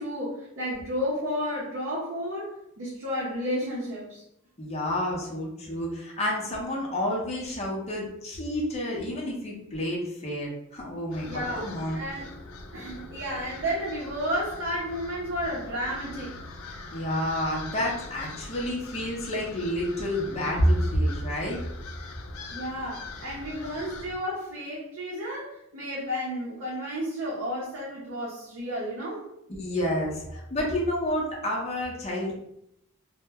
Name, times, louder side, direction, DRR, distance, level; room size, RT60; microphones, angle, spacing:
voice 1, 0.0-4.2 11.3-12.3 12.7-16.4 22.5-29.3 32.1-32.2, equal, 65° right, -6 dB, 0.6 m, -32 dB
voice 2, 4.6-12.0 16.9-21.6 29.6-32.3, equal, 30° left, -3 dB, 0.6 m, -29 dB
sound 1, 11.1-24.1, left 3 dB, 85° left, 0.4 m, -43 dB
2.1 x 2.1 x 3.4 m, 0.79 s
head